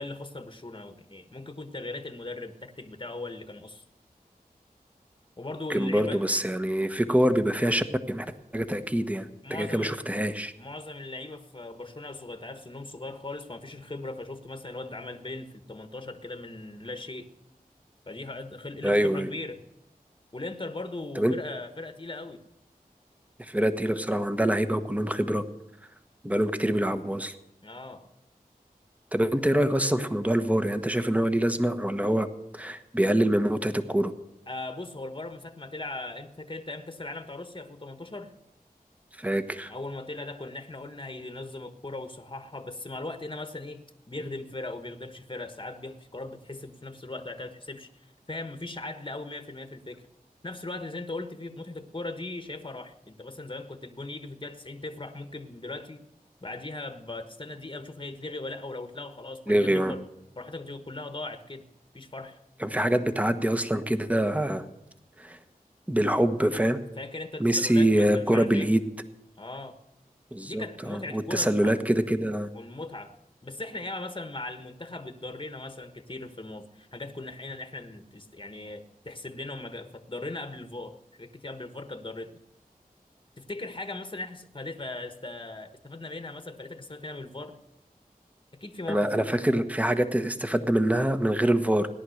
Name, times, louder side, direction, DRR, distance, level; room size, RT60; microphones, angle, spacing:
voice 1, 0.0-3.8 5.4-6.2 9.4-10.0 10.6-17.3 18.1-19.6 20.3-22.4 27.6-28.1 34.5-38.3 39.7-43.8 44.1-50.0 50.4-56.0 56.4-60.0 60.4-61.7 61.9-62.4 67.0-68.7 69.4-69.8 70.4-71.8 72.5-73.1 73.4-82.3 83.4-87.6 88.6-89.4, left 2 dB, 30° left, 7 dB, 1.3 m, -39 dB
voice 2, 5.7-8.3 8.5-10.5 18.8-19.3 21.1-21.3 23.4-25.4 26.2-27.3 29.1-32.3 32.5-34.1 39.2-39.7 59.5-59.9 62.6-64.6 65.2-65.4 65.9-66.8 67.4-68.8 70.3-72.5 88.9-91.9, right 1 dB, 10° right, 9 dB, 1.3 m, -25 dB
17.5 x 10.5 x 6.5 m, 0.86 s
wide cardioid pair, 40°, 15 cm